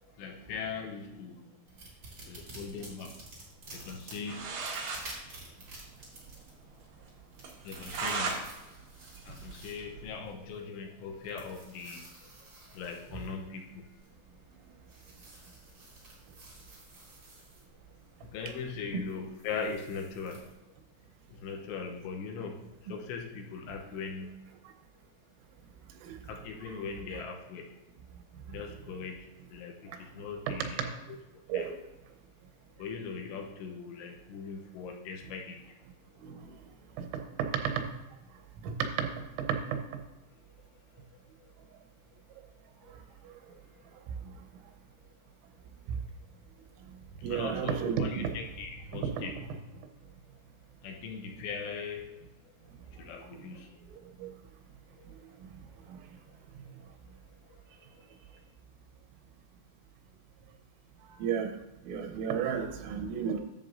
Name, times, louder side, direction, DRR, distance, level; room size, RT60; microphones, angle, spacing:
voice 1, 0.0-1.6 2.2-3.3 3.7-4.8 7.6-8.6 9.2-12.1 12.7-14.1 18.2-20.7 21.3-24.6 26.2-27.8 28.5-30.9 31.3-31.7 32.8-35.8 40.7-41.5 42.8-43.6 43.9-44.0 47.3-49.4 50.8-53.8 54.9-55.1 56.7-56.8 57.5-57.6 57.9-58.1, left 5 dB, 75° left, 2 dB, 2.8 m, -41 dB
sound 1, 1.7-20.5, right 2 dB, 35° right, 2.0 m, -51 dB
sound 2, 4.0-5.0 5.4-5.5 5.7-5.8 6.2-6.3 6.7-6.8 7.4-8.4 8.8-10.1, right 4 dB, 60° right, 2.4 m, -36 dB
voice 2, 38.6-39.1 47.2-48.3 48.9-49.2 54.2-54.3 61.2-61.6 61.8-63.4, right 7 dB, 90° right, 5 dB, 3.5 m, -32 dB
11.0 x 7.2 x 2.6 m, 1.0 s
omnidirectional pair, 5.7 m